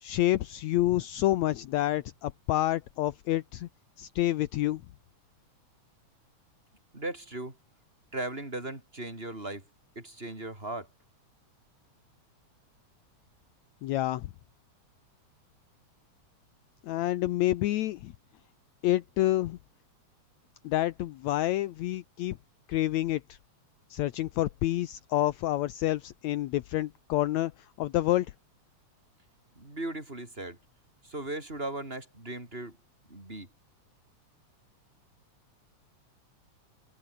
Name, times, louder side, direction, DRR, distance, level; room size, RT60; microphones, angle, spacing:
voice 1, 0.0-3.7 4.0-4.8 13.8-14.3 16.8-18.1 18.8-19.6 20.6-22.4 22.7-23.4 23.9-27.5 27.8-28.3, left 15 dB, 75° left, 2.0 m, -28 dB
voice 2, 6.9-7.6 8.1-9.6 9.9-10.9 29.6-30.6 31.0-32.8 33.1-33.5, right 2 dB, 15° right, 6.6 m, -37 dB
omnidirectional pair, 3.5 m